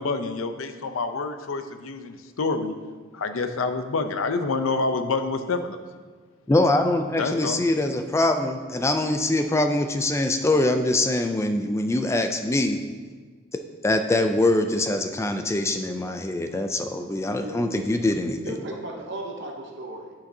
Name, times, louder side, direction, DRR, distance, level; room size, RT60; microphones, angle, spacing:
voice 1, 0.0-2.7 3.1-5.8 7.2-7.6, left 3 dB, 90° left, 9 dB, 0.6 m, -27 dB
voice 2, 6.5-12.8 13.5-18.4, left 2 dB, 15° left, 6 dB, 0.3 m, -23 dB
voice 3, 17.4-17.8 18.4-20.1, right 1 dB, 60° right, 2 dB, 0.7 m, -36 dB
10.0 x 5.8 x 2.7 m, 1.5 s
head